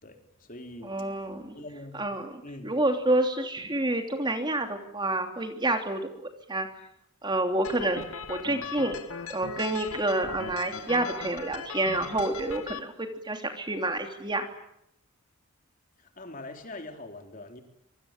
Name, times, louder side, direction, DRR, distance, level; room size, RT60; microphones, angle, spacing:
voice 1, 0.0-1.1 1.5-2.1 2.4-2.7 16.0-17.6, left 2 dB, 40° left, 5 dB, 3.8 m, -43 dB
voice 2, 0.8-1.6 1.9-6.7 7.2-8.0 8.3-9.0 9.3-14.5, right 2 dB, 20° right, 5 dB, 3.1 m, -28 dB
sound 1, 7.6-12.8, left 5 dB, 75° left, 2.2 m, -39 dB
26.0 x 24.0 x 8.9 m, 0.77 s
head